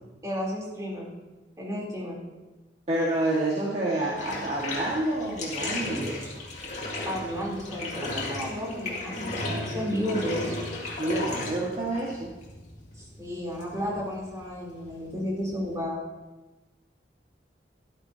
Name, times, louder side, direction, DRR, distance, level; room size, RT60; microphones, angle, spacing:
voice 1, 0.2-1.1 1.6-2.2 7.0-10.5 12.9-16.0, equal, 20° right, -5 dB, 3.4 m, -32 dB
voice 2, 2.9-6.3 11.0-12.3, right 1 dB, 35° right, -5 dB, 1.7 m, -28 dB
Bathtub (filling or washing), 4.1-15.8, left 2 dB, 40° left, 2.2 m, -35 dB
13.0 x 12.0 x 2.8 m, 1.1 s
head